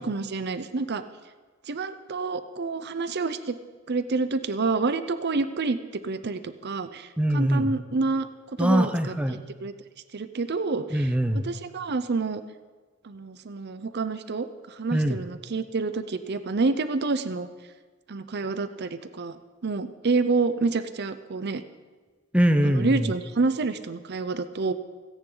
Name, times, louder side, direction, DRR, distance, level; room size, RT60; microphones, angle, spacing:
voice 1, 0.0-1.0 1.7-3.5 3.9-5.8 6.0-8.3 8.6-8.9 9.6-9.7 10.1-11.1 11.4-12.4 13.0-17.5 18.1-21.6 22.6-24.7, right 3 dB, 55° right, 11 dB, 0.6 m, -28 dB
voice 2, 7.2-7.8 8.6-9.4 10.9-11.5 14.9-15.2 22.3-23.1, right 1 dB, 5° right, 7 dB, 0.7 m, -23 dB
28.5 x 9.9 x 3.9 m, 1.4 s
head